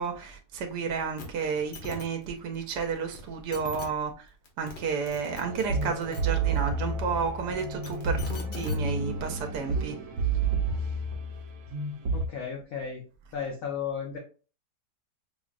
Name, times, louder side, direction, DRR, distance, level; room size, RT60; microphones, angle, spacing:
voice 1, 0.0-4.3 4.6-10.0, right 5 dB, 90° right, 1.2 m, -31 dB
Digital computer blips and pops, 1.2-1.3 1.5-2.0 3.1-3.2 3.5-3.9 4.5-4.8 5.1-6.2 7.6-8.8 9.8-9.9, left 3 dB, 80° left, 1.5 m, -41 dB
sound 1, 5.4-12.3, right 4 dB, 65° right, 1.0 m, -30 dB
voice 2, 12.1-13.0 13.3-14.2, left 7 dB, 65° left, 1.1 m, -34 dB
5.6 x 2.0 x 2.4 m
omnidirectional pair, 1.7 m